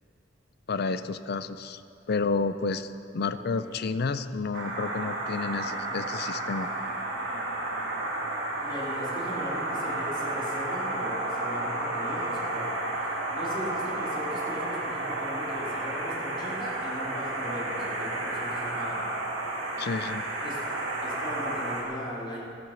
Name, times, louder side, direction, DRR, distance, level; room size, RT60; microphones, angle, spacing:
voice 1, 0.7-1.8 2.1-6.7 19.8-20.2, left 4 dB, 55° left, 12 dB, 0.5 m, -30 dB
voice 2, 3.2-3.7 8.6-12.7 13.3-19.1 20.4-20.6 21.0-22.4, equal, 25° left, -5 dB, 2.7 m, -38 dB
sound 1, 4.5-21.8, right 2 dB, 75° right, 2.4 m, -32 dB
13.5 x 8.8 x 6.2 m, 2.6 s
head